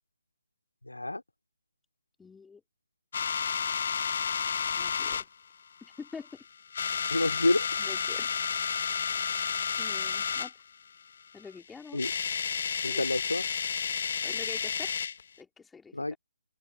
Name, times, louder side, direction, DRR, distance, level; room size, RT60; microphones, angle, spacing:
voice 1, 0.8-1.2 7.1-7.7 11.9-12.1 12.8-13.4 15.9-16.2, left 2 dB, 80° left, 2.6 m, -28 dB
voice 2, 2.2-2.6 4.8-5.3 5.8-6.4 7.8-8.3 9.8-10.5 11.3-12.0 12.9-13.1 14.2-14.9 15.4-16.2, left 5 dB, 5° left, 3.6 m, -46 dB
sound 1, 3.1-5.2 6.0-6.3 6.7-10.5 11.6-11.7 11.9-15.2, left 6 dB, 50° left, 1.0 m, -31 dB
open air
figure-of-eight pair, 145°, 0 cm